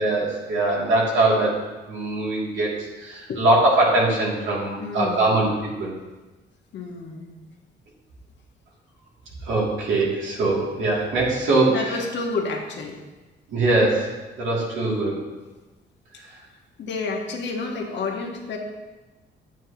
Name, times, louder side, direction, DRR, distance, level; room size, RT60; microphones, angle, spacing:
voice 1, 0.0-1.6 1.9-2.7 3.0-5.9 9.4-11.8 13.5-15.2, right 2 dB, 75° right, -4 dB, 2.6 m, -22 dB
voice 2, 4.8-5.3 6.7-7.3 11.7-13.0 16.3-16.4 16.8-18.6, left 3 dB, 65° left, 1 dB, 1.4 m, -30 dB
9.0 x 8.6 x 2.9 m, 1.2 s
cardioid pair, 90°, 20 cm